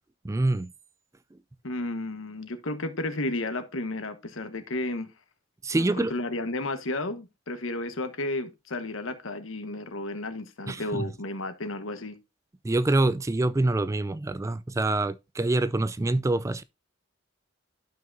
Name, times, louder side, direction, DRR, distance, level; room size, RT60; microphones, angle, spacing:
voice 1, 0.2-0.7 5.6-6.1 10.7-11.1 12.6-16.6, right 2 dB, 15° right, 0.3 m, -25 dB
voice 2, 1.6-5.1 5.7-12.2, left 2 dB, 90° left, 1.3 m, -33 dB
12.5 x 5.7 x 2.6 m
head